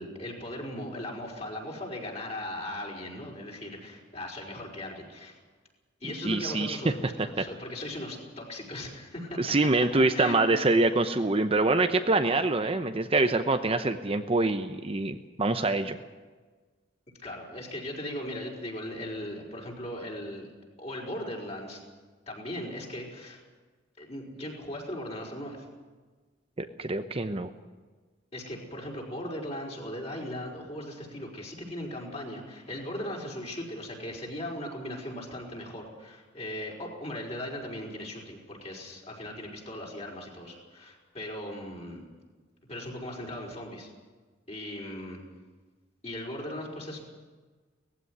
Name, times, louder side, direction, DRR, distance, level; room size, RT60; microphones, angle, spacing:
voice 1, 0.0-5.4 6.0-9.4 10.1-10.4 17.2-20.5 20.8-21.8 22.3-23.4 24.0-25.7 28.3-42.0 42.7-43.9 44.5-45.2 46.0-47.0, left 1 dB, 35° left, -1 dB, 5.1 m, -38 dB
voice 2, 6.2-6.8 7.4-7.5 9.4-16.0 26.8-27.5, right 2 dB, 30° right, 7 dB, 0.8 m, -25 dB
18.5 x 15.5 x 9.7 m, 1.4 s
head